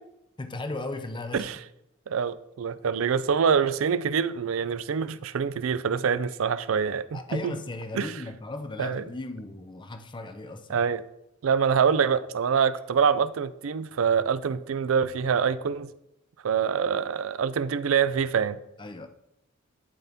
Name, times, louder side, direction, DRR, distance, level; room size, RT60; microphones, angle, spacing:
voice 1, 0.4-1.5 7.1-10.8 18.8-19.1, left 2 dB, 20° left, 8 dB, 0.6 m, -36 dB
voice 2, 2.1-7.5 7.9-8.1 8.8-9.0 10.7-11.0 11.4-15.9 16.4-18.6, right 6 dB, 70° right, 15 dB, 0.4 m, -25 dB
11.5 x 4.3 x 3.5 m, 0.84 s
head